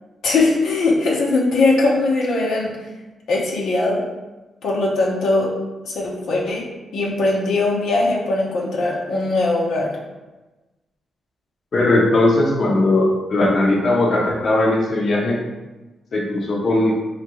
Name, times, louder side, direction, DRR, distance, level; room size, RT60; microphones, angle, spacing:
voice 1, 0.2-2.7 3.3-4.0 4.6-5.5 5.8-6.6 6.9-9.9, left 2 dB, 85° left, -3 dB, 0.9 m, -20 dB
voice 2, 11.7-15.4 16.1-16.9, left 2 dB, 50° left, -2 dB, 0.8 m, -18 dB
4.9 x 2.9 x 3.0 m, 1.1 s
cardioid pair, 100°, 0 cm